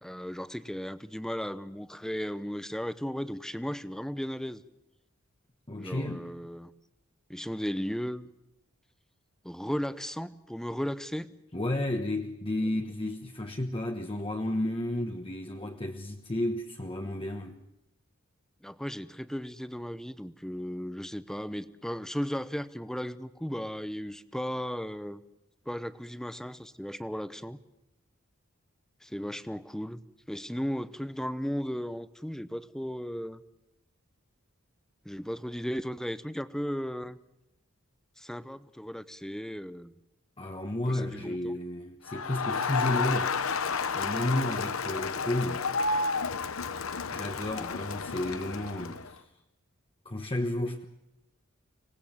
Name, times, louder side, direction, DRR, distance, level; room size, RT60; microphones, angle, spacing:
voice 1, 0.0-4.6 5.8-6.7 7.3-8.3 9.4-11.3 18.6-25.2 25.7-27.6 29.0-30.0 30.3-33.4 35.0-37.2 38.2-39.9 40.9-41.6, equal, 5° left, 0.7 m, -35 dB
voice 2, 5.7-6.3 11.5-17.6 40.4-43.4 43.9-45.7 47.1-49.3 50.0-50.8, left 1 dB, 25° left, 1.2 m, -32 dB
Crowd, 42.1-49.1, left 4 dB, 85° left, 1.0 m, -31 dB
25.0 x 18.5 x 7.3 m
head